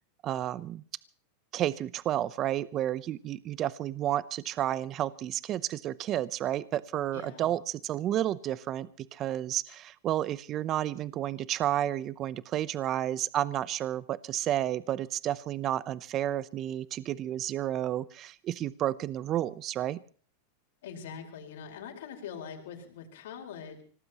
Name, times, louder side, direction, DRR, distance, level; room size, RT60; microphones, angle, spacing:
voice 1, 0.2-0.8 1.5-20.0, right 12 dB, 40° right, 18 dB, 0.7 m, -31 dB
voice 2, 7.1-7.5 20.8-23.8, left 7 dB, 75° left, 2 dB, 4.6 m, -43 dB
25.5 x 18.0 x 3.0 m, 0.43 s
hypercardioid pair, 115°, 0 cm